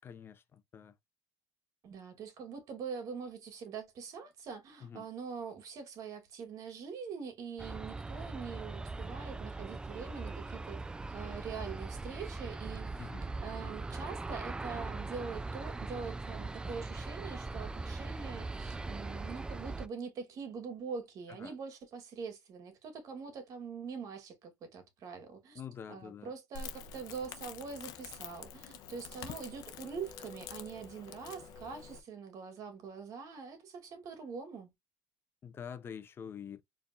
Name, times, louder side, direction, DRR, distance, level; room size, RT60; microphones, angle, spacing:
voice 1, 0.0-0.9 4.8-5.1 13.0-13.3 21.4-21.5 25.5-26.3 35.4-36.6, left 7 dB, 30° left, 0.7 m, -46 dB
voice 2, 1.8-13.0 13.4-25.6 25.9-34.7, right 5 dB, 50° right, 2.1 m, -44 dB
Aircraft, 7.6-19.9, right 3 dB, 10° right, 0.4 m, -40 dB
Crackle, 26.5-32.0, left 7 dB, 65° left, 0.9 m, -47 dB
4.4 x 3.5 x 2.5 m
cardioid pair, 115°, 7 cm